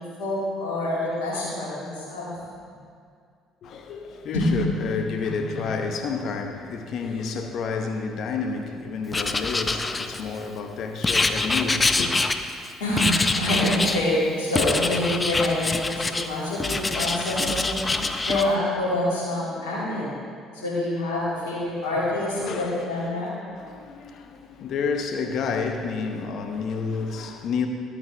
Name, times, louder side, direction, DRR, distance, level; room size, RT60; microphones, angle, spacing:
voice 1, 0.0-2.3 4.3-4.5 5.2-5.3 5.6-5.7 12.8-17.8 18.2-20.1 20.5-23.3, left 1 dB, 85° left, 2.5 m, -26 dB
voice 2, 3.6-12.1 22.4-27.7, left 5 dB, 60° left, 1.0 m, -30 dB
Writing, 9.1-10.4 11.0-12.7 13.0-14.0 14.6-16.3 16.6-18.5, left 3 dB, 25° left, 0.6 m, -25 dB
12.0 x 8.6 x 3.4 m
hypercardioid pair, 55°, 0 cm